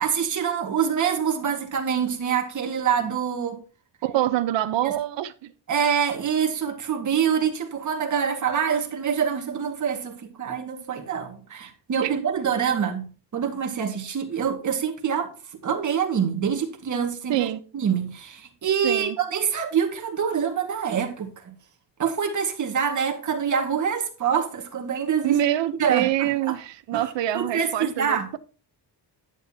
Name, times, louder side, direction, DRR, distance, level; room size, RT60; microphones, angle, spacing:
voice 1, 0.0-3.6 4.8-4.9 5.7-15.3 15.6-21.6 22.0-25.4 25.8-26.6 26.9-28.3, right 7 dB, 40° right, 2.0 m, -26 dB
voice 2, 4.0-5.5 12.0-12.1 17.3-17.6 18.8-19.2 25.2-28.4, right 13 dB, 80° right, 1.0 m, -25 dB
11.0 x 9.6 x 2.9 m
cardioid pair, 160°, 43 cm